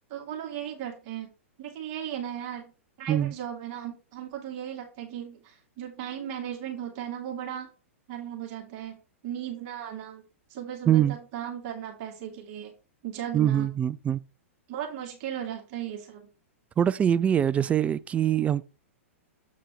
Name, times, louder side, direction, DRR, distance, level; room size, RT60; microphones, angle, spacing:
voice 1, 0.1-1.3 1.6-2.7 3.0-7.7 8.1-9.0 9.2-10.2 10.5-12.7 13.0-13.7 14.7-16.3, right 10 dB, 45° right, 2.4 m, -36 dB
voice 2, 10.9-11.2 13.3-14.2 16.8-18.6, right 10 dB, 20° right, 0.3 m, -23 dB
8.0 x 5.0 x 3.8 m
figure-of-eight pair, 110°, 7 cm